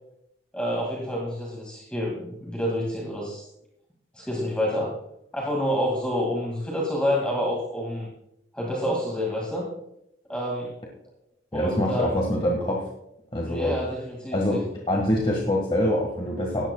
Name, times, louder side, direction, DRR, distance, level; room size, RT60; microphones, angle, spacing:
voice 1, 0.5-3.5 4.1-4.9 5.3-8.1 8.5-9.7 10.3-10.7 11.5-12.1 13.5-14.6, equal, 5° left, -4 dB, 2.3 m, -28 dB
voice 2, 11.5-12.8 13.3-13.7 14.3-14.6 14.9-16.7, left 1 dB, 30° left, -1 dB, 1.8 m, -24 dB
18.5 x 14.0 x 2.4 m, 0.79 s
head